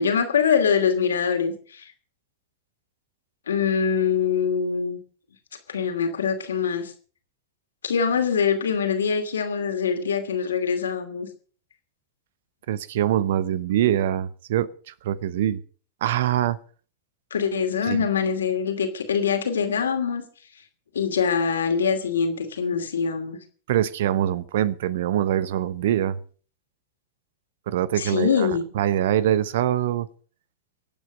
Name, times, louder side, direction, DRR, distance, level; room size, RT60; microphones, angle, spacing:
voice 1, 0.0-1.9 3.5-5.0 5.7-6.9 7.8-11.3 17.3-20.2 20.9-23.4 28.0-28.6, left 6 dB, 70° left, 2.6 m, -24 dB
voice 2, 12.7-15.6 16.0-16.6 17.9-18.1 23.7-26.2 27.7-28.5 28.7-30.1, right 11 dB, 55° right, 0.8 m, -24 dB
24.5 x 8.8 x 5.2 m
figure-of-eight pair, 90°, 0 cm